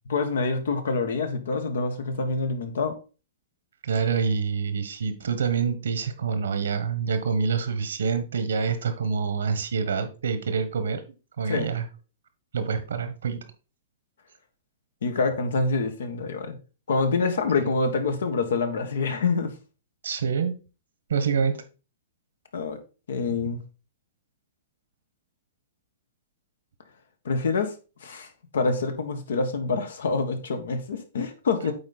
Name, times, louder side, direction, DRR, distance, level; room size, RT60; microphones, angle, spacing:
voice 1, 0.1-2.9 11.4-11.7 15.0-16.6 16.9-19.5 22.5-22.8 23.1-23.6 27.2-27.7 28.0-31.7, left 4 dB, 85° left, 1.5 m, -26 dB
voice 2, 3.8-11.0 11.4-11.8 12.5-13.4 20.0-20.5 21.1-21.6, right 5 dB, 90° right, 1.4 m, -26 dB
8.7 x 4.1 x 4.2 m
hypercardioid pair, 145°, 0 cm